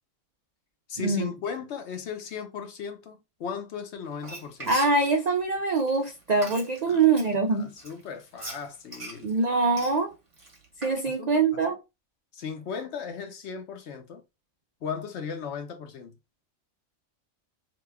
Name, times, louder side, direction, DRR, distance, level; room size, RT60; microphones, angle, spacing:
voice 1, 0.9-4.7 6.9-7.0 7.5-9.3 11.1-11.6 12.3-14.2 14.8-16.2, left 6 dB, 65° left, 0.8 m, -37 dB
Frying (food), 4.1-7.3 7.8-11.0, right 2 dB, 30° right, 0.8 m, -41 dB
voice 2, 4.7-7.7 9.2-10.1 10.8-11.8, right 4 dB, 85° right, 0.3 m, -24 dB
2.9 x 2.2 x 3.3 m
omnidirectional pair, 1.4 m